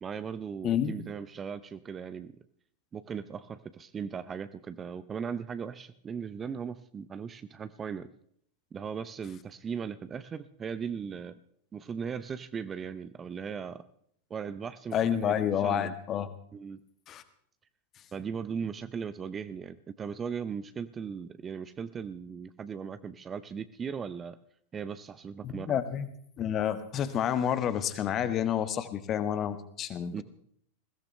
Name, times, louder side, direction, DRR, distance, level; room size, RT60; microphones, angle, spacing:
voice 1, 0.0-2.3 2.9-8.1 8.7-11.3 11.7-13.8 14.3-15.9 16.5-16.8 18.1-24.4 24.7-25.8 30.1-30.2, right 6 dB, 20° right, 13 dB, 0.7 m, -38 dB
voice 2, 0.6-1.0 14.9-16.3 17.1-17.2 25.4-26.1 26.4-30.2, left 9 dB, 30° left, 11 dB, 1.5 m, -29 dB
21.5 x 16.5 x 3.3 m, 0.65 s
figure-of-eight pair, 90°, 0 cm